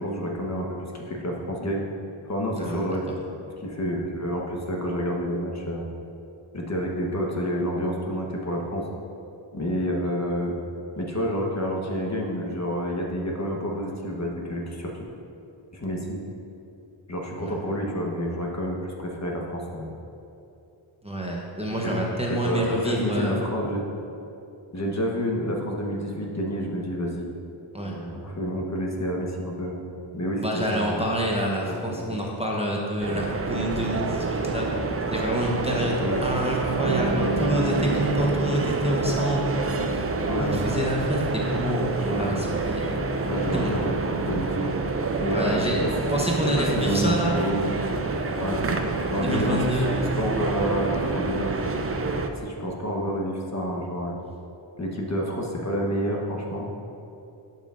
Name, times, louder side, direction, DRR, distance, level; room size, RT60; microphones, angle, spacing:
voice 1, 0.0-1.8 2.2-3.1 3.6-5.9 6.5-8.8 9.5-10.5 11.0-14.9 15.7-16.2 17.1-19.9 21.8-21.9 22.4-23.8 24.7-27.3 27.9-29.9 30.1-31.0 31.6-32.2 36.0-36.2 40.3-40.7 41.9-42.5 43.3-44.8 45.2-45.9 46.5-47.7 48.4-48.6 49.1-51.5 52.4-54.2 54.8-56.7, equal, 35° left, -1 dB, 1.1 m, -29 dB
voice 2, 21.0-23.4 27.7-28.0 30.4-34.7 35.1-39.5 40.4-43.0 43.5-43.7 45.3-45.8 46.1-47.4 49.1-50.1, equal, 15° right, -3 dB, 0.8 m, -27 dB
sound 1, 33.0-52.3, right 3 dB, 30° right, 0.4 m, -28 dB
Guitar, 36.7-43.8, right 1 dB, 75° right, 0.8 m, -33 dB
11.0 x 5.7 x 2.5 m, 2.8 s
wide cardioid pair, 70°, 48 cm